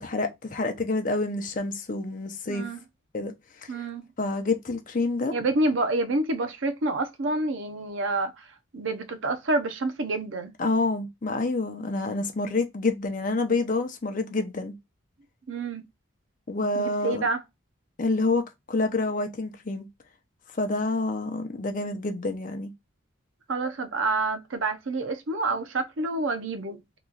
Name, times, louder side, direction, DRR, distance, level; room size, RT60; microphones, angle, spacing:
voice 1, 0.0-2.6 3.1-3.3 3.6-3.7 4.2-5.3 10.6-14.7 16.5-17.3 18.0-19.8 20.6-22.7, left 3 dB, 40° left, 0.5 m, -28 dB
voice 2, 2.5-2.8 3.7-4.0 5.3-8.3 8.7-10.5 15.5-15.8 16.7-17.4 23.5-27.0, right 2 dB, 65° right, 0.6 m, -28 dB
2.9 x 2.3 x 3.8 m
head